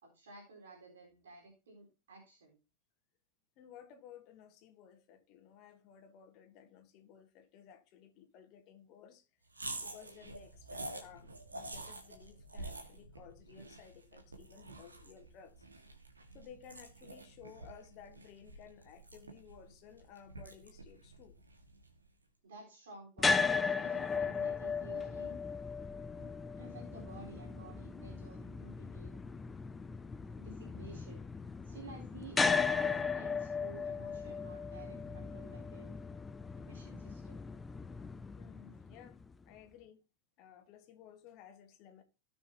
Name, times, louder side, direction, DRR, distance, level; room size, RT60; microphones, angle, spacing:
voice 1, 0.0-2.6 22.4-25.3 26.1-26.3 26.6-29.2 30.4-31.2 31.6-36.0 36.6-37.4, right 2 dB, 65° right, 4.1 m, -53 dB
voice 2, 3.6-9.3 9.8-15.6 16.3-21.4 38.4-39.2 39.4-40.0 40.4-42.0, left 8 dB, 40° left, 1.4 m, -56 dB
sound 1, 9.5-22.0, right 2 dB, 80° right, 1.6 m, -48 dB
sound 2, 23.2-39.3, left 5 dB, 15° left, 0.4 m, -36 dB
sound 3, 23.7-39.9, right 3 dB, 15° right, 1.5 m, -63 dB
17.0 x 6.3 x 2.8 m
figure-of-eight pair, 90°, 0 cm